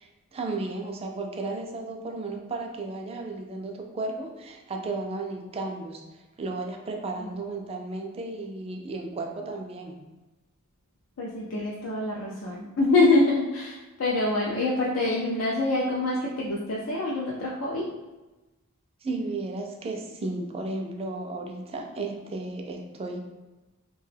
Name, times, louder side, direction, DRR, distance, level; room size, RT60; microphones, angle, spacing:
voice 1, 0.0-10.0 19.0-23.2, right 2 dB, 30° right, 2 dB, 0.3 m, -34 dB
voice 2, 11.2-17.9, left 2 dB, 70° left, -4 dB, 0.4 m, -25 dB
2.8 x 2.2 x 3.2 m, 1.1 s
head